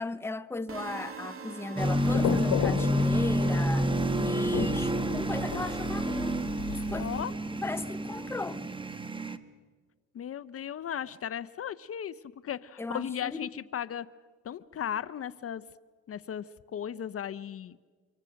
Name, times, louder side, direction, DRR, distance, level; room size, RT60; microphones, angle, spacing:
voice 1, 0.0-6.4 6.7-7.1 7.6-8.6 12.8-13.5, left 3 dB, 10° left, 0.7 m, -37 dB
sound 1, 0.7-4.7, right 5 dB, 45° right, 2.3 m, -45 dB
sound 2, 1.8-7.2, left 10 dB, 85° left, 1.4 m, -35 dB
sound 3, 1.8-9.4, right 1 dB, 15° right, 1.2 m, -29 dB
voice 2, 6.9-7.3 10.1-12.1 12.4-14.1 14.4-15.6 16.1-16.4 16.7-17.8, left 9 dB, 50° left, 0.7 m, -36 dB
26.0 x 23.5 x 6.4 m
cardioid pair, 90°, 30 cm